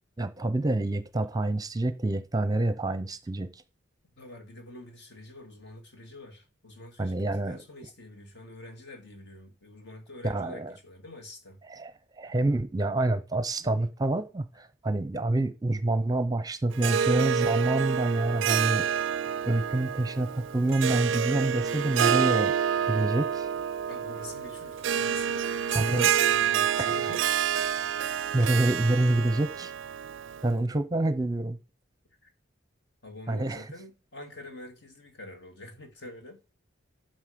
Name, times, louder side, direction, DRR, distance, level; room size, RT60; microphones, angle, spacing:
voice 1, 0.2-3.6 7.0-7.6 10.2-10.7 11.7-11.9 12.2-18.8 19.5-22.5 22.8-23.5 25.7-26.1 26.8-26.9 28.3-29.7 30.4-31.6 33.3-33.6, right 2 dB, 20° right, 0.6 m, -27 dB
voice 2, 4.2-11.6 23.9-27.3 28.0-28.3 32.2-32.3 33.0-36.4, left 2 dB, 60° left, 2.2 m, -45 dB
Harp, 16.7-30.5, right 8 dB, 75° right, 0.4 m, -28 dB
11.5 x 6.4 x 5.1 m
head